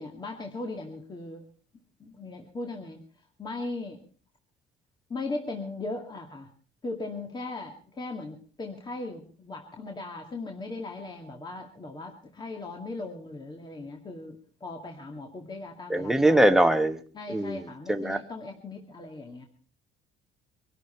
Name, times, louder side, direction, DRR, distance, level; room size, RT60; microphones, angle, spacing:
voice 1, 0.0-1.4 2.0-3.0 3.4-4.0 5.1-6.5 6.8-16.5 17.1-19.4, left 2 dB, 25° left, 2 dB, 2.0 m, -38 dB
voice 2, 15.9-17.0 17.3-17.6 17.9-18.2, right 1 dB, ahead, 7 dB, 1.2 m, -22 dB
23.5 x 12.5 x 4.3 m, 0.41 s
cardioid pair, 130°, 19 cm